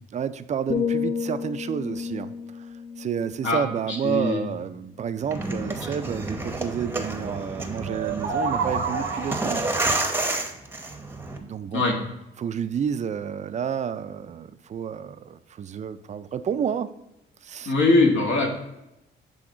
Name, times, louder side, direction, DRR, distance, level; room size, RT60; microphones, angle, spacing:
voice 1, 0.1-2.3 3.0-9.7 11.4-11.8 12.4-16.9 17.4-17.7, right 7 dB, 35° right, 12 dB, 0.4 m, -30 dB
sound 1, 0.7-4.7 5.0-5.4, left 6 dB, 35° left, 0.5 m, -32 dB
voice 2, 3.9-4.5 11.7-12.0 17.6-18.5, left 2 dB, 70° left, 0 dB, 1.6 m, -21 dB
sound 2, 5.2-11.4, right 2 dB, 10° right, 0.8 m, -30 dB
sound 3, 7.9-9.7, right 5 dB, 85° right, 0.8 m, -28 dB
7.7 x 3.5 x 3.8 m, 0.88 s
cardioid pair, 90°, 20 cm